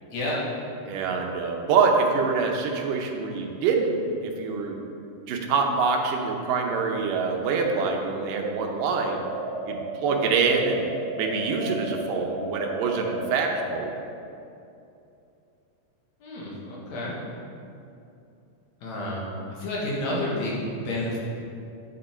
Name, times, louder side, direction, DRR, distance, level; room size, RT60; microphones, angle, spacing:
voice 1, 0.1-0.5 16.2-17.1 18.8-19.2 19.6-21.2, left 1 dB, 60° left, -5 dB, 2.9 m, -30 dB
voice 2, 0.9-4.8 5.3-9.3 9.7-10.9 11.2-13.9, right 5 dB, 85° right, 2 dB, 2.5 m, -25 dB
sound 1, 8.8-13.9, right 1 dB, 65° right, 1.5 m, -34 dB
9.8 x 6.8 x 4.4 m, 2.7 s
omnidirectional pair, 3.7 m